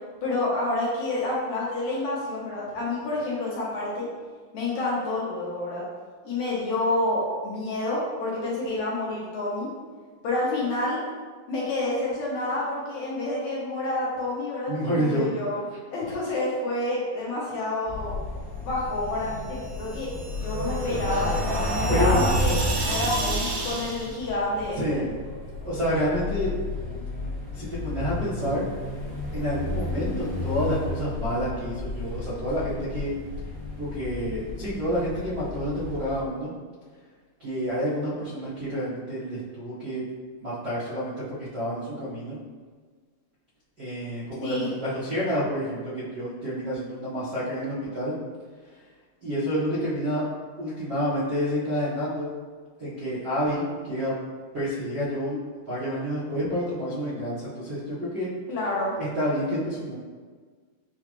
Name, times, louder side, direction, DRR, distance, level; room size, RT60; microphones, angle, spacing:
voice 1, 0.2-4.1 4.5-5.8 6.3-9.7 10.2-11.0 11.5-15.6 15.9-18.2 18.6-20.1 20.4-22.5 22.8-25.0 44.4-44.7 58.5-58.9, left 2 dB, 70° left, -6 dB, 1.9 m, -28 dB
voice 2, 14.7-15.3 21.9-22.2 24.7-25.0 25.6-26.5 27.5-28.6 29.3-33.1 33.8-36.5 37.4-40.0 40.4-42.4 43.8-48.1 49.2-50.2 50.6-52.3 52.8-54.1 54.5-55.4 55.7-58.3 59.0-59.9, equal, 65° right, -12 dB, 1.0 m, -29 dB
sound 1, 17.9-36.2, left 3 dB, 45° left, 1.2 m, -34 dB
sound 2, 19.6-24.1, right 1 dB, 85° right, 1.3 m, -27 dB
6.6 x 2.3 x 2.9 m, 1.5 s
omnidirectional pair, 3.8 m